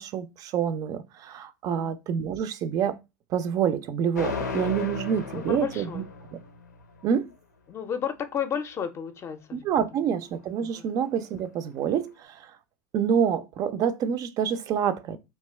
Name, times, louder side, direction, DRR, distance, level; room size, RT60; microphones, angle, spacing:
voice 1, 0.0-3.0 3.3-6.0 7.0-7.3 9.5-12.5 12.9-15.2, right 8 dB, 40° right, 0.4 m, -27 dB
sound 1, 4.2-7.1, left 4 dB, 90° left, 0.5 m, -35 dB
voice 2, 5.5-6.0 7.7-9.6 10.8-10.9, left 8 dB, 30° left, 0.5 m, -32 dB
2.8 x 2.2 x 3.2 m
hypercardioid pair, 85°, 9 cm